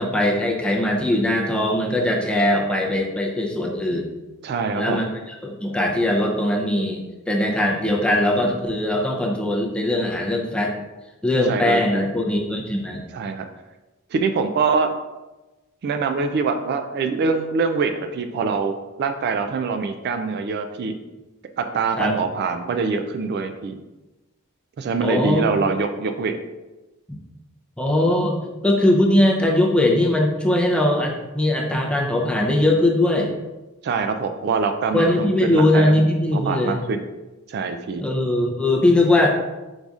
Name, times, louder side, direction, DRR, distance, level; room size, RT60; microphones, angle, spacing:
voice 1, 0.0-4.1 4.8-10.8 11.2-13.1 22.0-22.1 25.0-25.4 27.8-33.4 34.9-36.8 38.0-39.3, left 1 dB, 5° left, -1 dB, 0.5 m, -20 dB
voice 2, 4.4-5.0 11.4-12.0 13.1-13.4 14.1-14.9 15.8-21.0 21.6-23.8 24.8-26.4 33.8-36.0 36.3-37.0 37.5-38.0, right 4 dB, 50° right, 7 dB, 0.3 m, -24 dB
4.7 x 4.0 x 2.4 m, 1.1 s
head